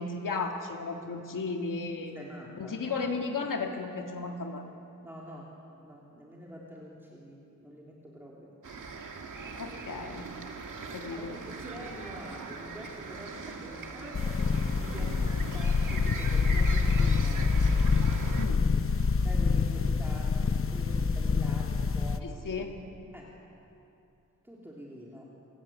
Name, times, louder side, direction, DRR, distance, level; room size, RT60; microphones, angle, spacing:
voice 1, 0.0-2.2 2.6-4.6 9.6-10.3 10.9-11.4 18.4-18.7 22.2-22.7, left 4 dB, 85° left, 2 dB, 2.0 m, -34 dB
voice 2, 2.1-3.0 5.0-8.5 11.2-14.4 14.8-17.5 19.2-22.6 23.1-23.3 24.4-25.3, equal, 5° right, -4 dB, 2.9 m, -46 dB
sound 1, 8.6-18.5, right 4 dB, 75° right, 2.1 m, -41 dB
sound 2, 14.1-22.2, left 5 dB, 45° left, 0.9 m, -26 dB
28.0 x 16.0 x 8.6 m, 2.7 s
wide cardioid pair, 150°, 31 cm